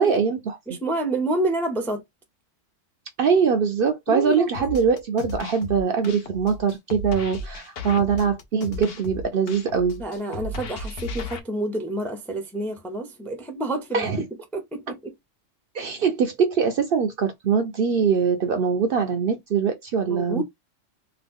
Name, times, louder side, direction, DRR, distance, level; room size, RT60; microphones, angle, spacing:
voice 1, 0.0-0.6 3.2-10.0 13.9-14.2 15.7-20.4, right 6 dB, 60° right, 0.6 m, -22 dB
voice 2, 0.7-2.0 4.1-4.5 10.0-14.2 14.5-15.1 20.1-20.4, right 1 dB, ahead, 0.4 m, -28 dB
sound 1, 4.5-11.4, left 2 dB, 60° left, 0.8 m, -35 dB
2.8 x 2.4 x 3.5 m
omnidirectional pair, 1.3 m